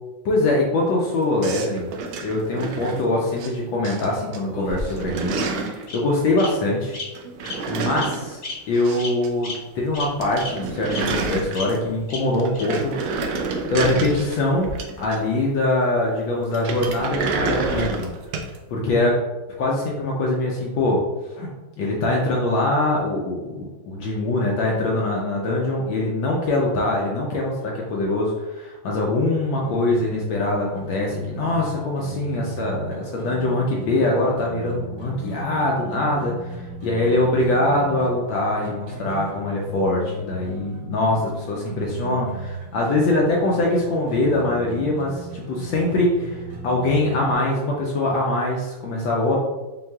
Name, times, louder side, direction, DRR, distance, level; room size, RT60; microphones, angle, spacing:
voice 1, 0.2-1.9 2.2-7.0 7.7-8.4 8.7-12.9 13.7-14.7 15.0-18.1 18.7-19.2 19.6-21.0 21.3-21.5 21.8-36.3 36.8-49.4, left 2 dB, 70° left, -2 dB, 1.3 m, -23 dB
sound 1, 1.4-3.5 3.8-4.4 4.7-5.9 7.1-9.3 9.5-9.6 9.9-10.0 10.2-12.0 12.3-15.4 16.5-18.6, right 4 dB, 85° right, 0.9 m, -29 dB
Bird vocalization bird call bird song, 4.4-5.2 5.9-6.0 6.4-6.5 6.9-7.0 7.4-7.6 7.9-8.1 8.4-8.5 9.0-9.1 9.4-9.5 9.9-10.0 10.4-10.5 10.9-11.0 11.5-11.6 12.1-12.2 12.5-12.6, left 3 dB, 45° left, 1.1 m, -32 dB
sound 2, 29.6-47.3, equal, 60° right, 1.7 m, -36 dB
5.4 x 3.0 x 2.3 m, 1.1 s
omnidirectional pair, 2.4 m